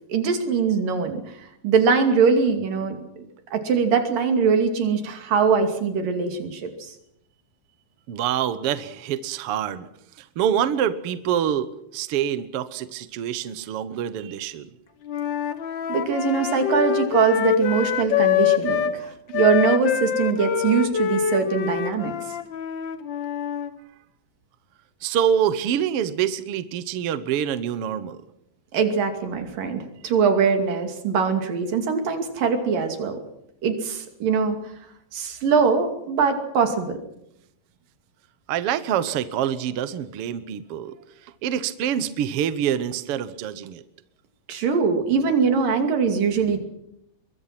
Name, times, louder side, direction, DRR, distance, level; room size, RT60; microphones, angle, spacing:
voice 1, 0.1-1.2 1.6-3.0 3.5-6.9 15.9-22.1 28.7-33.2 33.6-34.6 35.1-37.0 44.5-46.6, right 5 dB, 90° right, 6 dB, 4.3 m, -22 dB
voice 2, 8.1-9.9 10.2-14.7 25.0-28.2 38.5-41.0 41.4-43.8, right 9 dB, 60° right, 13 dB, 1.7 m, -26 dB
Wind instrument woodwind instrument, 15.1-19.0 19.3-23.7, left 9 dB, 80° left, 1.0 m, -24 dB
23.5 x 22.0 x 6.0 m, 0.78 s
omnidirectional pair, 3.8 m